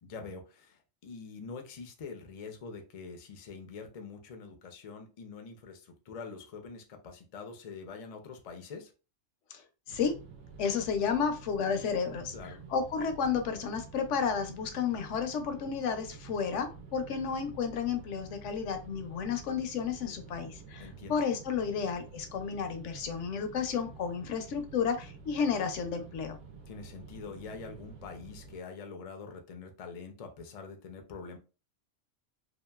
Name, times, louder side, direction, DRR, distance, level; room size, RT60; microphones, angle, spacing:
voice 1, 0.0-8.9 12.3-12.6 20.8-21.2 26.7-31.4, left 5 dB, 55° left, 5 dB, 0.4 m, -45 dB
sound 1, 9.9-28.6, right 4 dB, 75° right, 1.0 m, -49 dB
voice 2, 10.6-12.3 12.7-26.4, left 6 dB, 75° left, 7 dB, 0.9 m, -32 dB
2.8 x 2.4 x 2.2 m, 0.32 s
omnidirectional pair, 1.3 m